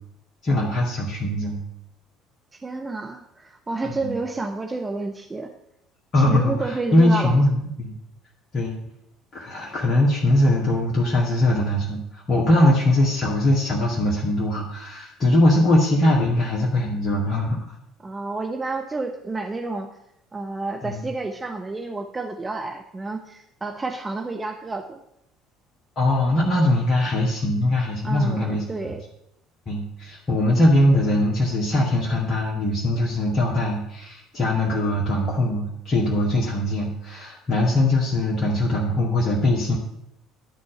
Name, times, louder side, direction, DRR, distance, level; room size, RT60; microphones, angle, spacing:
voice 1, 0.4-1.6 3.8-4.2 6.1-8.0 8.5-8.8 9.3-17.6 20.8-21.1 26.0-28.6 29.7-39.8, left 1 dB, 35° left, -4 dB, 2.1 m, -21 dB
voice 2, 2.6-5.5 6.2-7.4 18.0-20.0 20.3-25.0 28.0-29.0, right 3 dB, 20° right, 3 dB, 1.0 m, -30 dB
11.5 x 4.3 x 7.9 m, 0.81 s
figure-of-eight pair, 55°, 0 cm